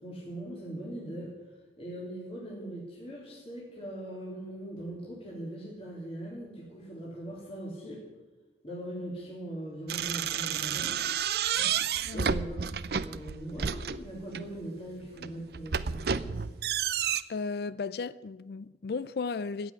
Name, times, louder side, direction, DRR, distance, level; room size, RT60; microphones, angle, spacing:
voice 1, 0.0-1.3 1.8-8.0 8.6-11.0 12.1-16.4, right 1 dB, 35° left, 3.2 m, -40 dB
sound 1, 9.9-14.5 15.0-17.2, right 7 dB, 60° right, 0.6 m, -31 dB
voice 2, 12.0-12.3 17.3-19.7, left 4 dB, 60° left, 0.4 m, -35 dB
15.0 x 8.3 x 9.8 m
head